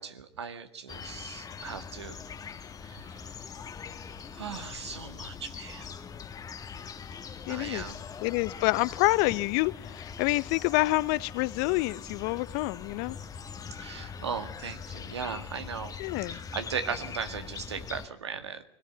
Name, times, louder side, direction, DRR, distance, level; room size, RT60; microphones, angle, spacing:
voice 1, 0.0-2.2 2.8-3.2 4.3-5.9 7.5-8.1 13.7-16.0 16.3-18.6, right 6 dB, 85° right, 1.9 m, -38 dB
sound 1, 0.9-18.1, left 6 dB, 25° left, 1.5 m, -42 dB
voice 2, 7.5-7.9 8.2-13.2 16.0-16.4, left 22 dB, 55° left, 0.8 m, -27 dB
22.0 x 17.0 x 8.1 m
hypercardioid pair, 85°, 14 cm